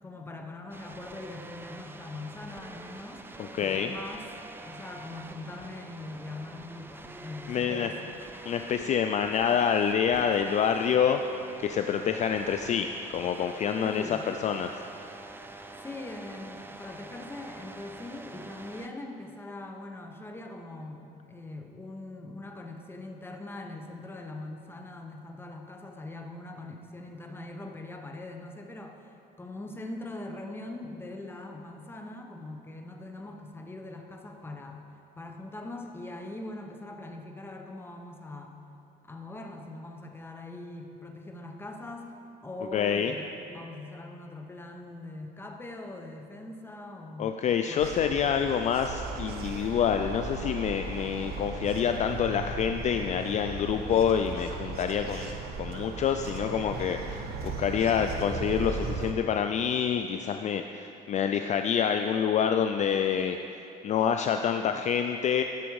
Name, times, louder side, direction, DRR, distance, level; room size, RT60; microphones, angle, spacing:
voice 1, 0.0-4.3 4.6-8.2 13.8-14.3 15.8-34.8 35.2-38.5 39.0-48.0, left 2 dB, 15° left, 3 dB, 0.9 m, -42 dB
sound 1, 0.7-18.9, right 2 dB, 15° right, 0.5 m, -46 dB
voice 2, 3.4-3.9 7.5-7.9 8.5-14.7 42.7-43.1 47.2-65.4, left 8 dB, 45° left, 6 dB, 0.4 m, -27 dB
sound 2, 47.8-59.1, right 4 dB, 70° right, 0.9 m, -37 dB
12.0 x 6.2 x 4.7 m, 2.7 s
cardioid pair, 110°, 17 cm